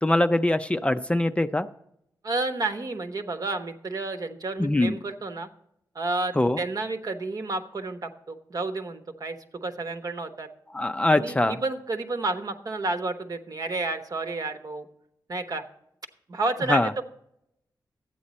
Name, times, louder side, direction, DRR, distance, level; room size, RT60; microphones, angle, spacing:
voice 1, 0.0-1.7 4.6-5.0 6.4-6.6 10.7-11.6 16.7-16.9, left 1 dB, 15° left, 9 dB, 0.4 m, -23 dB
voice 2, 2.2-5.5 5.9-10.5 11.1-14.8 15.3-15.6 16.3-17.0, right 3 dB, 55° right, 6 dB, 1.1 m, -31 dB
12.0 x 8.6 x 4.2 m, 0.75 s
wide cardioid pair, 90°, 8 cm